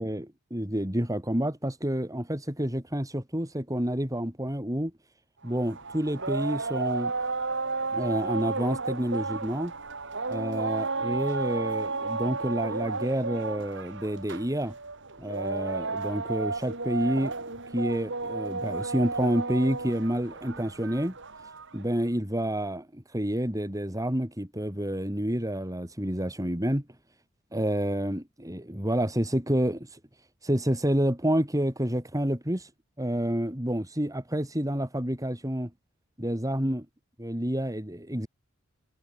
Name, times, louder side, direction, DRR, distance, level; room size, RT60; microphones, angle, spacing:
voice 1, 0.0-4.9 5.4-7.1 7.9-9.7 10.3-14.7 15.2-17.3 17.7-21.1 21.7-26.8 27.5-30.0 30.4-32.7 33.0-35.7 36.2-36.9 37.2-38.3, equal, 15° right, 4.3 m, -29 dB
sound 1, 5.5-21.8, right 3 dB, 60° right, 5.3 m, -33 dB
head